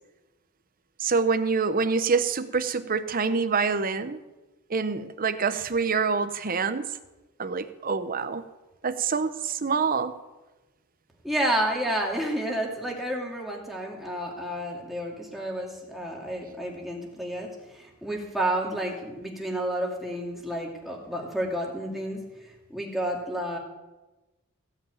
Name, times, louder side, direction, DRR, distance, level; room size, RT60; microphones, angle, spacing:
voice 1, 1.0-4.2 4.7-6.9 7.4-8.4 8.8-10.1, right 5 dB, 40° right, 11 dB, 0.8 m, -26 dB
voice 2, 11.2-23.6, right 1 dB, ahead, -2 dB, 2.5 m, -30 dB
16.0 x 5.7 x 9.2 m, 1.1 s
head